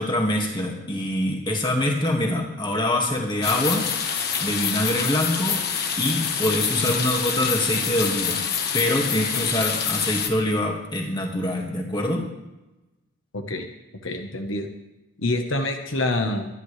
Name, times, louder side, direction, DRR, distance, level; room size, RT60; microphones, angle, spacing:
voice 1, 0.0-3.9 4.4-5.6 6.0-8.4 8.7-12.3, left 1 dB, 20° left, 0 dB, 2.1 m, -24 dB
sound 1, 3.4-10.3, left 7 dB, 50° left, 1.4 m, -26 dB
voice 2, 13.3-13.7 14.0-14.7 15.2-16.5, left 2 dB, 70° left, 4 dB, 1.3 m, -26 dB
24.0 x 11.0 x 3.4 m, 1.0 s
head